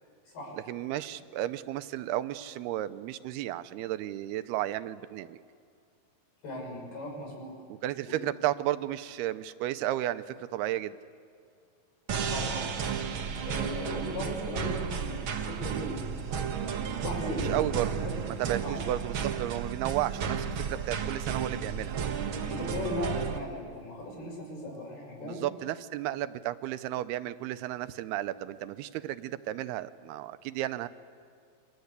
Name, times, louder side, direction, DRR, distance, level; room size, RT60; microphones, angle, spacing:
voice 1, 0.7-5.4 7.8-11.0 17.3-22.0 25.2-30.9, right 14 dB, 90° right, 13 dB, 2.8 m, -33 dB
voice 2, 6.4-7.6 8.1-8.2 12.3-12.8 13.5-16.5 17.0-17.6 18.0-18.2 18.6-18.9 22.4-25.4, left 1 dB, 80° left, 1 dB, 7.8 m, -38 dB
sound 1, 12.1-23.4, right 6 dB, 70° right, 1.2 m, -33 dB
29.0 x 24.5 x 8.2 m, 2.3 s
omnidirectional pair, 4.4 m